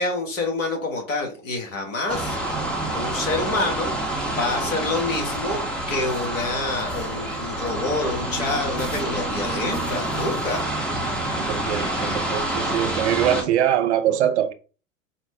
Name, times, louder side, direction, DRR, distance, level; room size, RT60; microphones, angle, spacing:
voice 1, 0.0-2.4 2.9-3.9 4.3-10.7, left 2 dB, 70° left, 1.6 m, -27 dB
sound 1, 2.1-13.4, right 1 dB, 5° left, 0.7 m, -27 dB
voice 2, 10.9-14.5, right 10 dB, 55° right, 0.6 m, -23 dB
4.9 x 2.1 x 3.5 m
figure-of-eight pair, 95°, 40 cm